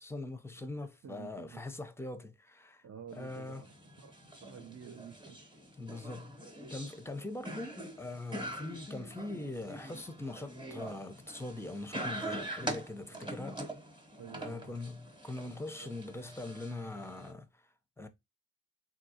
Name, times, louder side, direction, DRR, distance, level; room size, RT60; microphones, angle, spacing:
voice 1, 0.0-2.8 3.1-3.6 5.8-6.4 6.7-13.6 14.4-17.7 18.0-18.1, left 2 dB, 5° left, 0.5 m, -42 dB
voice 2, 1.0-1.6 2.8-5.4 13.1-13.4 14.2-14.8 15.8-16.0, right 8 dB, 45° right, 0.5 m, -51 dB
sound 1, 3.1-17.3, right 1 dB, 15° right, 0.9 m, -44 dB
3.5 x 2.7 x 2.7 m
wide cardioid pair, 90°, 37 cm